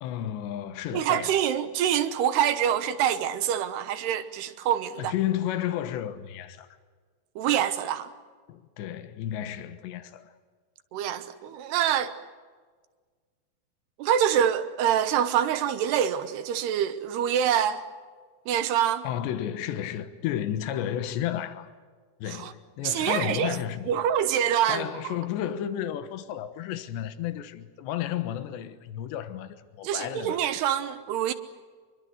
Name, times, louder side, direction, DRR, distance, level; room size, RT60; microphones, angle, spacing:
voice 1, 0.0-1.3 5.0-6.7 8.5-10.3 19.0-21.7 22.2-23.9 24.7-30.5, left 11 dB, 85° left, 3.4 m, -32 dB
voice 2, 0.9-5.1 7.4-8.1 10.9-12.1 14.0-17.8 18.5-19.1 22.3-22.5 22.8-23.6 23.9-24.9 29.8-31.3, right 9 dB, 75° right, 3.1 m, -25 dB
26.0 x 22.5 x 7.9 m
omnidirectional pair, 4.9 m